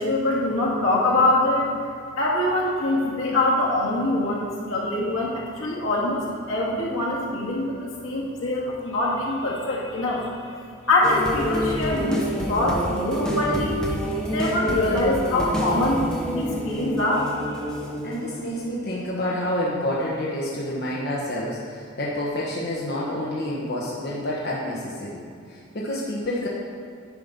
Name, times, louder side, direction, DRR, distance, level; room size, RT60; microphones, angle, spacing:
voice 1, 0.0-1.7 2.2-10.5 10.9-13.8 14.3-17.6, left 1 dB, 85° left, -5 dB, 2.2 m, -24 dB
sound 1, 11.0-19.0 19.4-19.6, equal, 5° left, 1.1 m, -28 dB
voice 2, 18.0-25.2 25.5-26.5, left 1 dB, 50° left, -5 dB, 1.2 m, -28 dB
9.5 x 5.8 x 5.3 m, 2.4 s
head